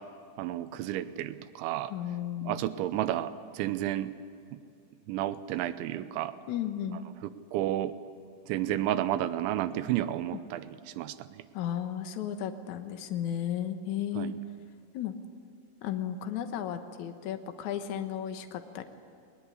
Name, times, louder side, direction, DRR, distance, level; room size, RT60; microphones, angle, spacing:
voice 1, 0.4-1.9 2.4-4.1 4.5-4.6 5.1-6.3 7.5-8.0 8.5-11.4 14.2-14.3, right 13 dB, 90° right, 12 dB, 3.1 m, -31 dB
voice 2, 1.9-2.6 6.5-7.1 10.3-10.4 11.5-14.3 14.9-15.1 15.8-18.8, left 10 dB, 75° left, 7 dB, 1.7 m, -34 dB
20.5 x 20.5 x 9.8 m, 2.5 s
omnidirectional pair, 5.3 m